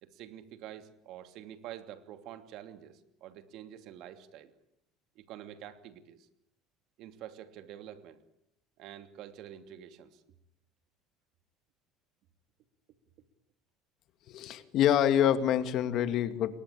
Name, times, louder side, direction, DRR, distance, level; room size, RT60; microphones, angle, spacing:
voice 1, 0.0-4.5 5.1-6.3 7.0-8.3 8.8-10.2, right 11 dB, 60° right, 9 dB, 2.8 m, -47 dB
voice 2, 14.3-16.6, left 10 dB, 55° left, 11 dB, 2.3 m, -26 dB
28.5 x 23.5 x 8.6 m, 0.76 s
supercardioid pair, 120°, 0 cm